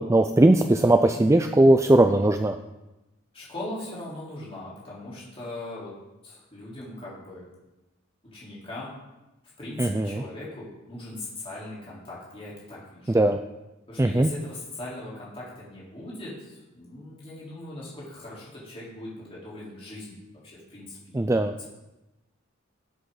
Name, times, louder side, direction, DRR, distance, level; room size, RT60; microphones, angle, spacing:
voice 1, 0.0-2.6 9.8-10.2 13.1-13.4 14.0-14.3 21.1-21.5, right 1 dB, 15° right, 7 dB, 0.4 m, -19 dB
voice 2, 3.3-5.9 6.2-7.5 8.3-9.0 9.6-13.2 13.9-20.2 20.4-21.7, left 2 dB, 30° left, -8 dB, 3.7 m, -40 dB
17.5 x 8.2 x 3.9 m, 1.0 s
head